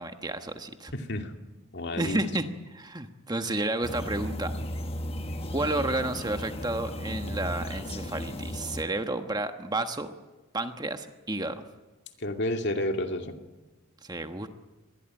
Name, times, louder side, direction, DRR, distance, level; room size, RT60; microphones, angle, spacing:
voice 1, 0.0-0.9 2.0-4.5 5.5-10.1 10.5-11.6 14.0-14.5, right 2 dB, 20° right, 7 dB, 1.3 m, -31 dB
voice 2, 0.9-1.3 1.7-2.3 12.2-13.3, left 1 dB, 50° left, 5 dB, 2.4 m, -30 dB
sound 1, 3.8-8.8, equal, 25° left, 1.4 m, -35 dB
26.0 x 21.0 x 9.0 m, 1.2 s
head